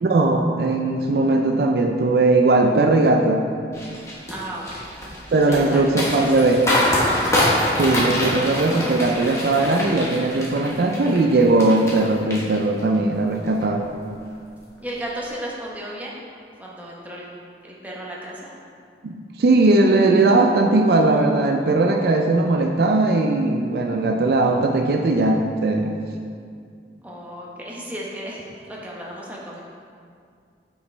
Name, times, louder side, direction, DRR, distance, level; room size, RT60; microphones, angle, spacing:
voice 1, 0.0-3.5 5.3-6.6 7.8-13.9 19.0-26.0, right 2 dB, 60° right, 3 dB, 0.4 m, -19 dB
sound 1, 3.7-12.0 12.3-13.0 13.4-13.6, left 1 dB, 15° left, 1.1 m, -24 dB
voice 2, 4.3-6.6 14.8-16.2 16.6-17.3 17.6-18.5 27.0-29.6, right 1 dB, 10° right, -4 dB, 0.9 m, -35 dB
8.5 x 4.9 x 3.2 m, 2.3 s
head